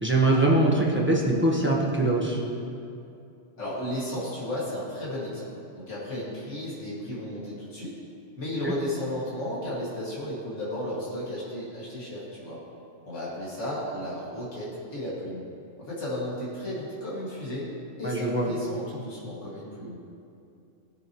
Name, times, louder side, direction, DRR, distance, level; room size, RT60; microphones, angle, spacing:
voice 1, 0.0-2.4 8.6-8.7 18.0-18.5, right 2 dB, 10° right, -3 dB, 1.2 m, -23 dB
voice 2, 3.6-5.5 5.7-8.0 8.4-12.6 13.0-15.4 15.8-17.7 18.0-20.0, left 1 dB, 70° left, -8 dB, 2.7 m, -34 dB
17.0 x 6.8 x 3.1 m, 2.6 s
omnidirectional pair, 1.3 m